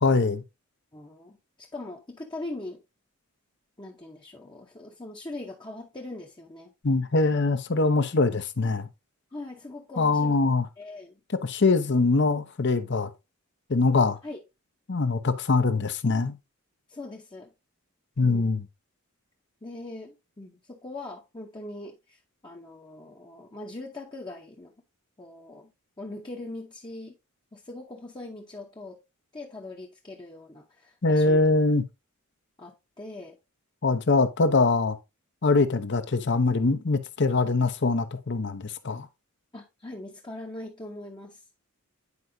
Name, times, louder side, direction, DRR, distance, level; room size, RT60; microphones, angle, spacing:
voice 1, 0.0-0.4 6.8-8.9 10.0-10.7 11.4-13.1 13.7-14.2 14.9-16.4 18.2-18.6 31.0-31.8 33.8-35.0 35.4-39.1, left 3 dB, 55° left, 0.8 m, -23 dB
voice 2, 0.9-2.8 3.8-6.7 9.3-10.4 10.8-11.2 14.2-14.4 16.9-17.5 18.2-18.5 19.6-24.7 25.2-25.7 26.0-27.1 27.5-29.0 29.3-31.5 32.6-33.4 39.5-41.4, left 2 dB, 20° left, 0.8 m, -41 dB
9.6 x 4.7 x 2.7 m
head